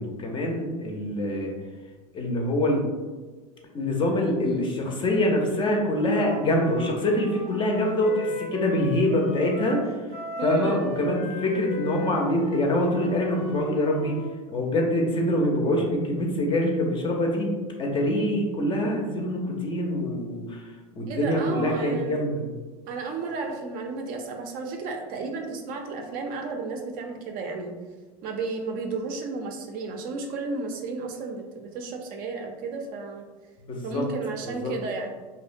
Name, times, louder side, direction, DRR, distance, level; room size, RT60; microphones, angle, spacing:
voice 1, 0.0-1.5 2.1-2.8 3.7-10.1 10.4-14.2 14.5-17.5 17.8-22.4 33.7-34.1 34.4-34.7, left 1 dB, 25° left, 0 dB, 0.5 m, -25 dB
Wind instrument woodwind instrument, 5.9-14.4, left 1 dB, 90° left, 0.7 m, -36 dB
voice 2, 10.4-10.8 21.1-22.2 22.9-27.7 28.2-33.2 33.8-35.1, right 4 dB, 50° right, 3 dB, 0.4 m, -33 dB
2.7 x 2.1 x 2.5 m, 1.3 s
hypercardioid pair, 100°, 19 cm